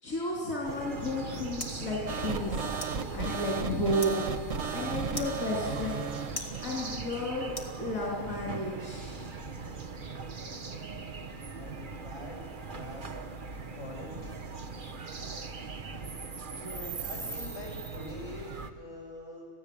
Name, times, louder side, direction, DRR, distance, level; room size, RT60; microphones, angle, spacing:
voice 1, 0.0-2.7 3.1-4.2 4.7-6.1 6.6-9.3 16.4-17.1, left 1 dB, 85° left, -4 dB, 4.0 m, -33 dB
sound 1, 0.6-18.7, right 4 dB, 40° right, 1.2 m, -40 dB
sound 2, 0.8-8.3, left 1 dB, 25° left, 2.7 m, -46 dB
sound 3, 2.1-7.0, right 6 dB, 70° right, 1.4 m, -35 dB
voice 2, 11.6-12.4 12.7-13.0 13.7-14.3 17.0-19.5, left 1 dB, 60° left, -2 dB, 8.6 m, -44 dB
27.5 x 17.0 x 8.6 m, 2.2 s
omnidirectional pair, 1.4 m